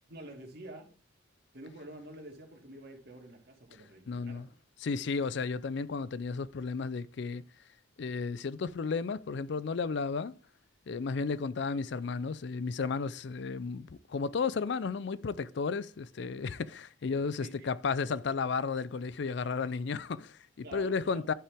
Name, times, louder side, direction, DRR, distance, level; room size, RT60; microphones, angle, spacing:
voice 1, 0.1-0.9 1.5-4.6 17.0-17.7 20.6-21.3, right 1 dB, 55° right, 2.3 m, -48 dB
voice 2, 4.1-4.5 4.8-7.4 8.0-10.3 10.9-21.3, left 5 dB, 60° left, 0.4 m, -33 dB
11.0 x 5.7 x 3.5 m
head